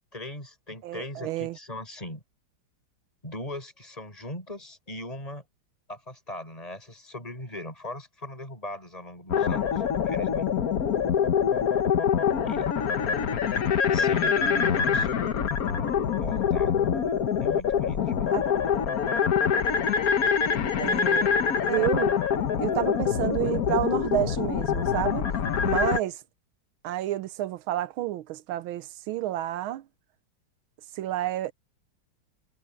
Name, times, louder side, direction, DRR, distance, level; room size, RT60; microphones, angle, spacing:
voice 1, 0.1-2.2 3.2-5.4 5.9-10.5 12.4-12.8 13.9-15.4 16.2-16.8 17.4-18.3, left 1 dB, 15° left, 7.5 m, -39 dB
voice 2, 0.8-1.6 18.3-18.4 20.8-21.3 21.6-22.2 22.6-25.3 25.6-26.2 26.8-29.8 30.9-31.5, right 14 dB, 80° right, 1.5 m, -30 dB
sound 1, 9.3-26.0, left 7 dB, 50° left, 1.3 m, -25 dB
omnidirectional pair, 2.3 m